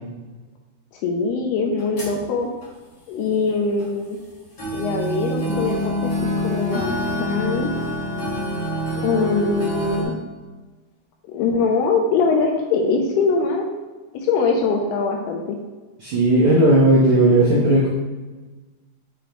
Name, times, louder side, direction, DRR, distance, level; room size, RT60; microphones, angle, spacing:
voice 1, 1.0-2.5 3.1-4.2 4.7-6.1 6.4-6.9 7.2-7.7 9.0-10.1 11.3-13.7 14.1-15.6, left 4 dB, 80° left, 1 dB, 2.4 m, -22 dB
sound 1, 1.8-2.2 2.6-2.7 3.8-3.9 4.6-10.0, left 1 dB, 55° left, 1.2 m, -26 dB
voice 2, 16.0-17.9, right 1 dB, 85° right, -5 dB, 1.6 m, -15 dB
6.7 x 5.1 x 3.0 m, 1.2 s
omnidirectional pair, 5.0 m